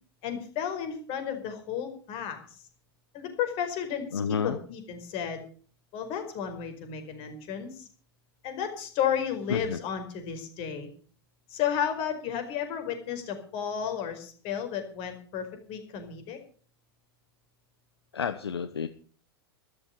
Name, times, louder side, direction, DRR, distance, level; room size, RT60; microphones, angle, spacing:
voice 1, 0.2-2.4 3.1-5.4 5.9-7.9 8.4-10.9 11.5-16.4, left 8 dB, 45° left, 6 dB, 5.0 m, -33 dB
voice 2, 4.1-4.6 9.5-9.8 18.1-18.9, left 6 dB, 80° left, 11 dB, 1.0 m, -30 dB
13.0 x 13.0 x 6.8 m, 0.43 s
figure-of-eight pair, 95°, 13 cm